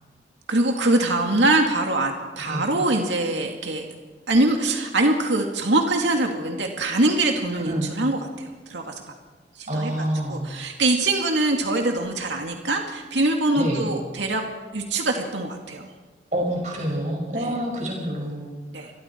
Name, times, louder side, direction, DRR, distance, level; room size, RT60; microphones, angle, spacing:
voice 1, 0.5-3.9 4.3-8.2 8.7-8.9 9.6-14.4 14.7-15.8 17.3-17.6 18.7-18.9, right 2 dB, 90° right, 2 dB, 2.4 m, -23 dB
voice 2, 7.5-7.9 9.7-10.5 13.5-13.9 16.3-18.5, right 1 dB, 40° right, 0 dB, 5.8 m, -27 dB
29.0 x 22.0 x 4.6 m, 1.3 s
head